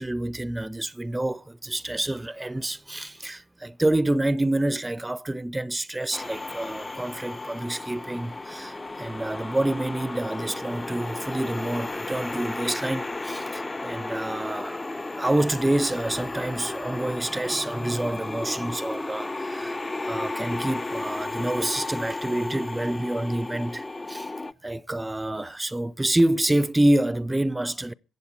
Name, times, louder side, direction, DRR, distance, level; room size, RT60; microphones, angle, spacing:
voice 1, 0.0-14.9 15.2-24.3 24.6-27.9, right 1 dB, 15° right, 0.6 m, -27 dB
sound 1, 6.1-24.5, left 2 dB, 25° left, 0.6 m, -34 dB
22.5 x 7.9 x 4.4 m
hypercardioid pair, 45°, 0 cm